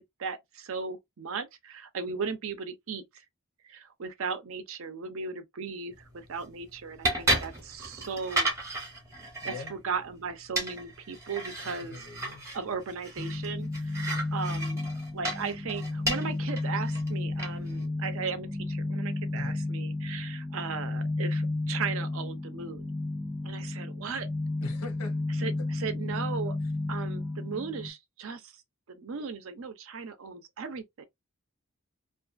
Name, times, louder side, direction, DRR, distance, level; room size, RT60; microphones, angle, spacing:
voice 1, 0.0-3.0 3.6-8.5 9.4-11.9 12.5-22.9 23.4-24.3 25.4-26.6 26.9-28.5 28.9-31.1, right 5 dB, 65° right, 0.5 m, -37 dB
sound 1, 5.9-17.9, right 1 dB, 15° right, 0.7 m, -35 dB
voice 2, 9.4-9.7 11.6-12.4 19.3-19.6 24.6-25.1, left 3 dB, 80° left, 0.8 m, -41 dB
sound 2, 13.2-27.9, left 2 dB, 10° left, 0.3 m, -33 dB
2.5 x 2.2 x 2.4 m
head